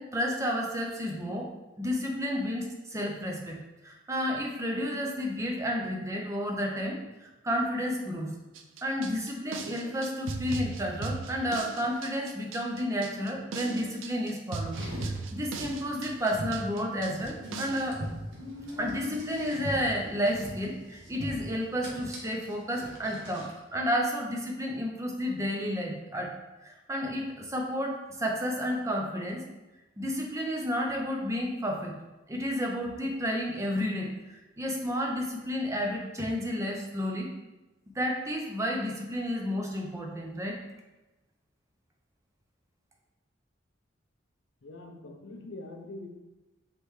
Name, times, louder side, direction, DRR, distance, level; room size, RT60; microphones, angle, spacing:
voice 1, 0.0-8.4 8.8-18.0 18.8-26.4 26.6-29.4 30.0-32.0 32.3-34.1 34.6-37.3 37.9-40.6, equal, 15° right, 0 dB, 0.6 m, -31 dB
sound 1, 8.5-17.9, right 4 dB, 90° right, 0.4 m, -38 dB
Car, 14.7-23.6, left 1 dB, 75° right, 1.1 m, -40 dB
voice 2, 44.6-46.1, left 2 dB, 70° left, 4 dB, 0.6 m, -43 dB
5.1 x 3.2 x 3.2 m, 1.0 s
head